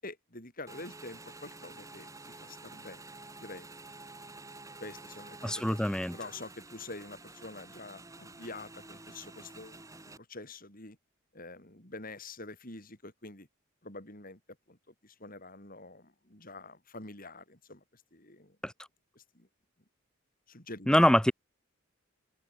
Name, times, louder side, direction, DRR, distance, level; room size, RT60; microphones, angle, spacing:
voice 1, 0.0-3.0 3.4-3.7 4.8-5.8 6.1-9.8 10.1-11.0 11.3-13.5 13.8-14.4 14.7-18.6 19.1-19.5 20.5-21.0, left 2 dB, 45° left, 6.8 m, -46 dB
Motorcycle / Engine, 0.7-10.2, right 3 dB, 15° right, 2.6 m, -50 dB
voice 2, 5.4-6.2 18.6-18.7 20.9-21.3, left 1 dB, 5° left, 0.6 m, -24 dB
head